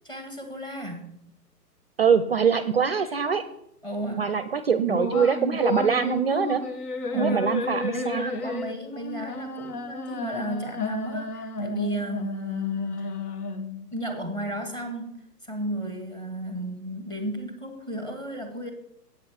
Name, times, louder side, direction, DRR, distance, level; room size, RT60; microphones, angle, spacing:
voice 1, 0.0-1.1 3.8-4.3 7.1-7.6 7.9-13.1 13.9-18.7, right 1 dB, 10° left, 6 dB, 1.2 m, -33 dB
voice 2, 2.0-3.4 4.2-6.6 7.2-8.3, right 6 dB, 40° right, 13 dB, 0.5 m, -23 dB
sound 1, 4.9-13.9, left 3 dB, 65° left, 1.3 m, -32 dB
8.2 x 7.8 x 6.3 m, 0.78 s
figure-of-eight pair, 135°, 49 cm